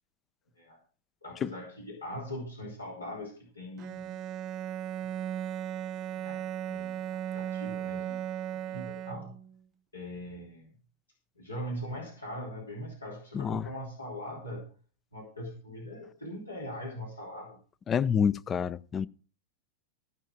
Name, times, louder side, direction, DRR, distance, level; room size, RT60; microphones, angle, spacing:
voice 1, 1.2-4.1 5.0-5.1 6.2-8.3 8.5-9.3 9.9-10.8 11.4-14.7 15.1-17.6, equal, 80° left, 3.1 m, -41 dB
Bowed string instrument, 3.8-9.6, right 10 dB, 35° right, 0.6 m, -36 dB
voice 2, 13.3-13.7 17.9-19.1, left 7 dB, 25° left, 0.5 m, -28 dB
14.5 x 5.7 x 6.1 m
figure-of-eight pair, 90°, 0 cm